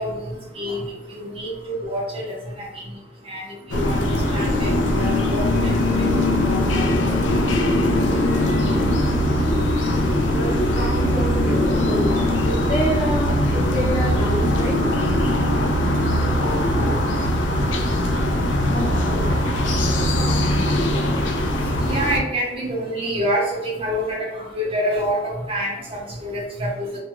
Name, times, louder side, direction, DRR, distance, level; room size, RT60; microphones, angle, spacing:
voice 1, 0.0-7.4 21.5-27.0, equal, 30° right, -3 dB, 0.6 m, -28 dB
sound 1, 3.7-22.2, left 1 dB, 90° left, 0.4 m, -20 dB
voice 2, 10.3-12.1 12.4-14.8, right 1 dB, 25° left, -5 dB, 0.9 m, -27 dB
2.4 x 2.3 x 2.9 m, 0.99 s
head